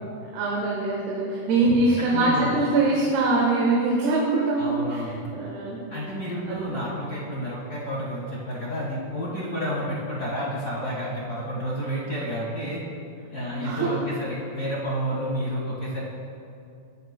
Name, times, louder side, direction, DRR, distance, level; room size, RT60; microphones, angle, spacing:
voice 1, 0.2-5.0 5.3-5.8 6.5-6.8 13.5-14.0, right 2 dB, 80° right, -4 dB, 3.4 m, -23 dB
voice 2, 2.0-2.5 4.6-5.1 5.9-12.8 13.3-16.0, equal, 75° left, -6 dB, 0.9 m, -30 dB
20.0 x 10.5 x 2.2 m, 2.5 s
omnidirectional pair, 4.6 m